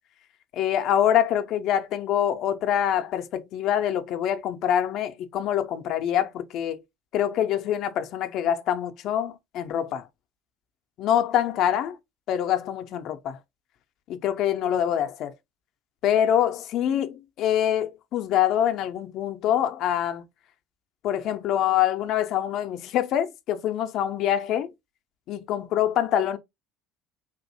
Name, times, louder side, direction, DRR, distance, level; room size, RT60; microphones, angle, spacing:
voice 1, 0.5-6.8 7.1-10.0 11.0-12.0 12.3-13.4 14.1-15.3 16.0-20.2 21.0-24.7 25.3-26.4, left 10 dB, 55° left, 0.5 m, -25 dB
4.0 x 2.6 x 2.6 m
figure-of-eight pair, 60°, 0 cm